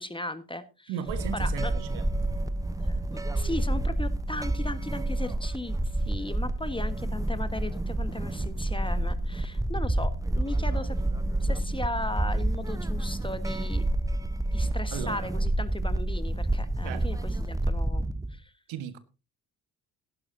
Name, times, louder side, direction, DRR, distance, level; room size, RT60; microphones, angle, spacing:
voice 1, 0.0-0.9 1.3-1.7 2.8-11.0 11.4-13.9 14.5-18.5, left 1 dB, 10° left, 1.4 m, -37 dB
voice 2, 0.9-2.0 14.9-15.3 16.8-17.0 18.7-19.0, right 9 dB, 65° right, 1.6 m, -36 dB
sound 1, 1.1-18.4, right 1 dB, 5° right, 0.9 m, -29 dB
16.0 x 11.5 x 2.8 m
hypercardioid pair, 50°, 49 cm